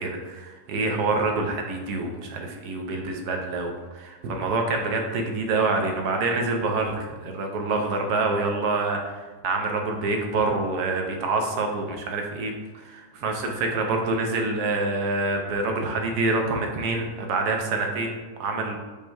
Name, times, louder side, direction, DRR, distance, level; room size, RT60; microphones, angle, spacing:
voice 1, 0.0-18.8, right 3 dB, 80° right, 3 dB, 1.2 m, -26 dB
5.2 x 2.2 x 4.6 m, 1.3 s
omnidirectional pair, 1.7 m